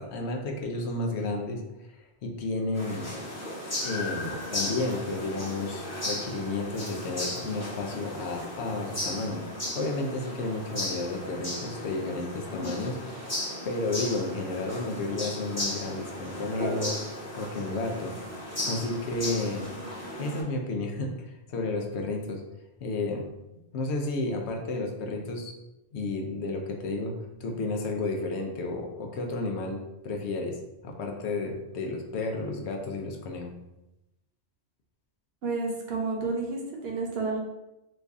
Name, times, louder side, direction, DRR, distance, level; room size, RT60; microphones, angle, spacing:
voice 1, 0.0-3.1 3.8-9.4 9.7-13.2 13.6-17.0 17.4-18.1 18.7-19.7 20.2-22.4 22.8-23.3 23.7-25.5 25.9-27.1 27.4-30.6 30.8-33.5, left 2 dB, 85° left, 2 dB, 0.9 m, -32 dB
sound 1, 2.7-20.4, left 1 dB, 15° left, 0.9 m, -35 dB
voice 2, 35.4-37.4, right 3 dB, 70° right, -1 dB, 1.0 m, -30 dB
3.1 x 2.5 x 3.5 m, 0.93 s
omnidirectional pair, 1.1 m